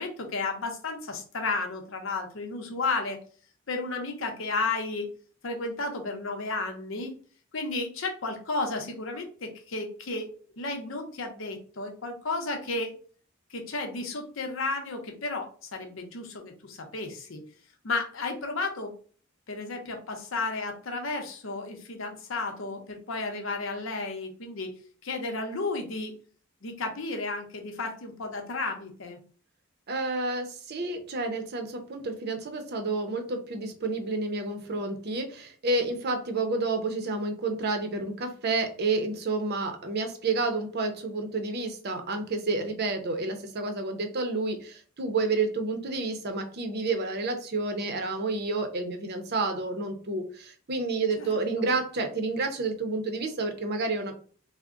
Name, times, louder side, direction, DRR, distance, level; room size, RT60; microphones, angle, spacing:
voice 1, 0.0-3.2 3.7-5.1 5.4-7.1 7.5-12.9 13.5-17.4 17.8-18.9 19.5-24.7 25.0-26.1 26.6-29.2 51.2-51.3, left 3 dB, 70° left, 4 dB, 0.8 m, -33 dB
voice 2, 29.9-54.1, right 3 dB, 50° right, 6 dB, 0.6 m, -30 dB
3.5 x 2.1 x 3.7 m, 0.43 s
head